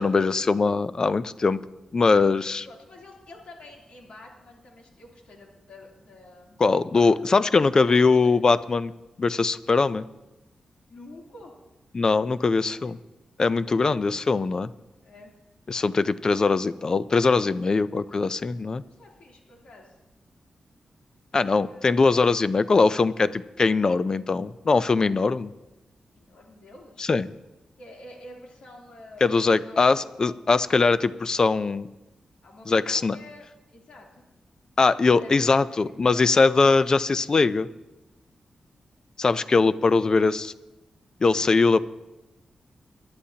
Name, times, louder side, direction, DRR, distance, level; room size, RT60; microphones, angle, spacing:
voice 1, 0.0-1.6 1.9-2.7 6.6-8.9 9.2-10.1 11.9-13.0 13.4-14.7 15.7-18.8 21.3-25.5 27.0-27.3 29.2-31.9 32.7-33.2 34.8-37.7 39.2-40.5 41.2-41.8, left 4 dB, 35° left, 15 dB, 0.4 m, -21 dB
voice 2, 2.6-8.4 10.9-11.6 12.6-13.0 15.0-15.3 18.8-19.9 21.3-22.0 26.1-27.1 27.8-30.4 32.4-34.3 35.0-35.3 35.7-36.4, left 1 dB, 75° left, -2 dB, 3.0 m, -48 dB
22.0 x 11.5 x 2.8 m, 1.0 s
wide cardioid pair, 145°, 2 cm